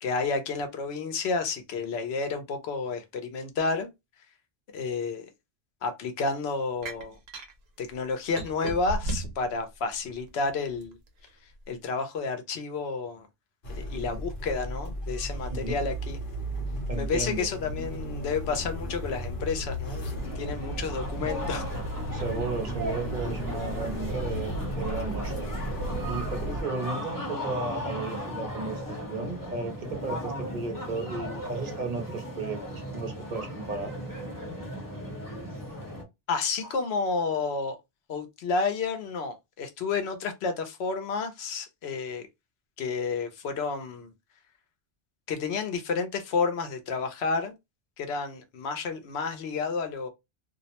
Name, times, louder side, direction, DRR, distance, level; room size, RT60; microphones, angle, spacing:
voice 1, 0.0-3.9 4.7-5.3 5.8-7.2 7.8-11.0 11.7-13.3 13.8-16.2 17.0-21.7 36.3-37.8 38.1-42.3 42.8-44.1 45.3-47.5 48.0-50.1, left 4 dB, 85° left, 0.9 m, -30 dB
sound 1, 6.8-7.5 8.4-9.5 10.0-10.9, right 2 dB, 80° right, 0.8 m, -33 dB
sound 2, 13.6-26.6, equal, 60° left, 0.9 m, -34 dB
voice 2, 15.5-15.8 16.9-17.5 22.1-25.5 26.1-33.9, right 3 dB, 50° right, 0.7 m, -34 dB
sound 3, 20.1-36.0, equal, 20° left, 0.9 m, -36 dB
2.4 x 2.0 x 2.8 m
omnidirectional pair, 1.1 m